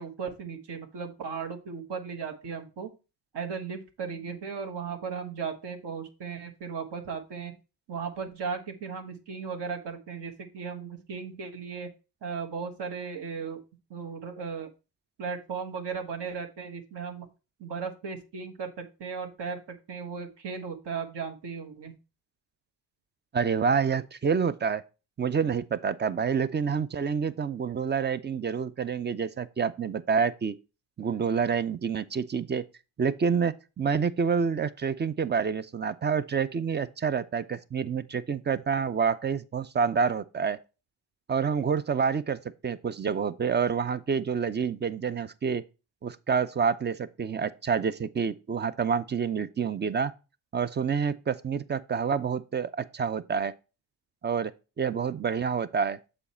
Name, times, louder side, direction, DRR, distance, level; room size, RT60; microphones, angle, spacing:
voice 1, 0.0-2.9 3.3-7.5 7.9-11.9 12.2-13.6 13.9-14.7 15.2-17.3 17.6-19.6 19.9-21.9, right 5 dB, 55° right, 1.4 m, -36 dB
voice 2, 23.3-24.8 25.2-30.6 31.0-32.6 33.0-40.6 41.3-45.6 46.0-50.1 50.5-53.5 54.2-54.5 54.8-56.0, right 6 dB, 25° right, 0.4 m, -28 dB
6.9 x 4.2 x 4.3 m
supercardioid pair, 60°, 48 cm